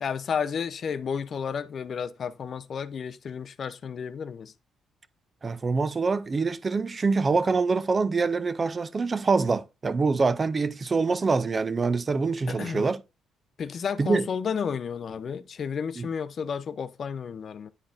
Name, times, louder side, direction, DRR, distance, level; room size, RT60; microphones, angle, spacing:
voice 1, 0.0-4.5 12.5-12.8 13.6-17.7, left 6 dB, 50° left, 0.4 m, -32 dB
voice 2, 5.4-13.0 14.0-14.3 16.0-16.1, right 4 dB, 35° right, 0.5 m, -25 dB
9.8 x 4.1 x 2.5 m
cardioid pair, 90°, 0 cm